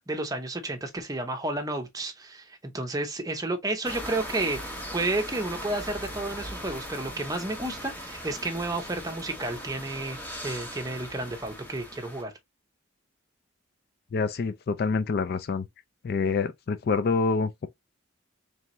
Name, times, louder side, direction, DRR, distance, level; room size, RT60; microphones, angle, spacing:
voice 1, 0.1-10.2 10.4-12.3, right 2 dB, 15° right, 0.7 m, -31 dB
sound 1, 3.8-12.2, equal, 10° left, 0.9 m, -39 dB
voice 2, 14.1-15.6 16.0-17.7, left 4 dB, 50° left, 0.3 m, -26 dB
3.8 x 3.4 x 3.0 m
head